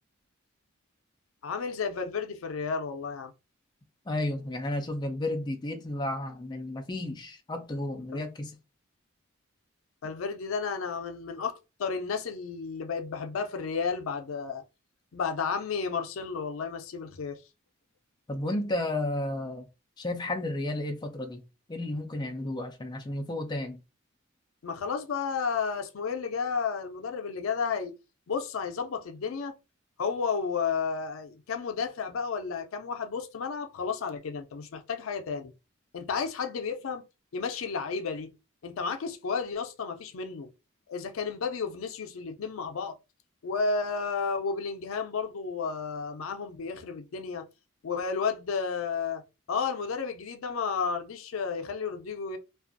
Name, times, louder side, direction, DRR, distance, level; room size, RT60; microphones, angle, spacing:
voice 1, 1.4-3.3 8.1-8.2 10.0-14.6 15.1-17.4 24.6-27.9 28.3-29.5 30.0-35.5 35.9-37.0 37.3-38.3 38.6-40.5 40.9-42.9 43.4-47.5 47.8-49.2 49.5-52.4, left 5 dB, 85° left, 0.4 m, -32 dB
voice 2, 4.1-8.6 18.3-19.7 20.0-21.4 21.7-23.8, left 1 dB, 20° left, 0.3 m, -32 dB
2.5 x 2.3 x 2.5 m
head